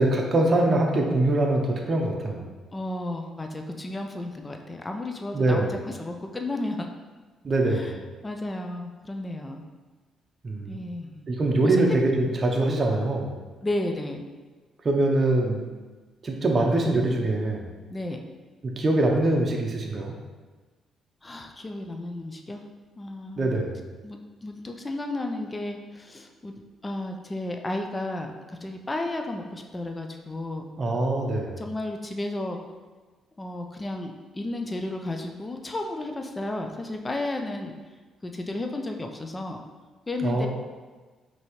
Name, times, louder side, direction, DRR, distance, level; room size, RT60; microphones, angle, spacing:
voice 1, 0.0-2.5 5.3-5.7 7.4-8.0 10.4-10.8 11.3-13.3 14.8-15.6 16.2-17.7 18.6-20.1 23.4-23.8 30.8-31.6 40.2-40.5, right 2 dB, 40° right, 0 dB, 0.6 m, -23 dB
voice 2, 2.7-6.9 7.7-7.9 8.2-9.6 10.7-11.2 11.6-12.0 13.6-14.3 17.9-18.2 21.2-22.6 23.0-23.6 24.0-26.5 26.8-30.7 31.6-32.6 33.4-37.7 38.2-39.6 40.1-40.5, left 2 dB, 20° left, 3 dB, 0.4 m, -33 dB
5.3 x 2.8 x 3.1 m, 1.3 s
cardioid pair, 90°, 0 cm